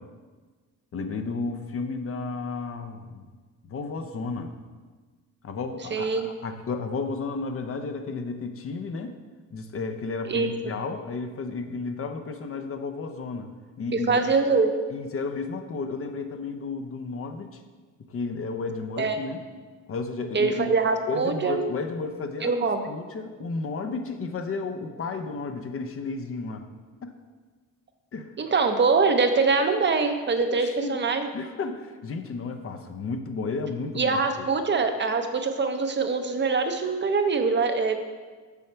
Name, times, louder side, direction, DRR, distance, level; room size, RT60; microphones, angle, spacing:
voice 1, 0.9-3.3 3.6-4.5 5.4-9.2 9.5-13.5 13.8-14.2 14.9-17.6 18.1-19.4 19.9-20.7 21.1-26.7 27.0-27.1 28.1-28.3 30.4-31.0 31.3-34.5, left 4 dB, 40° left, 6 dB, 0.6 m, -33 dB
voice 2, 5.9-6.3 10.3-10.5 13.9-14.7 19.0-19.2 20.3-21.6 22.4-22.9 28.4-31.3 34.0-38.0, right 4 dB, 35° right, 6 dB, 0.7 m, -23 dB
7.1 x 5.6 x 4.4 m, 1.4 s
cardioid pair, 100°, 33 cm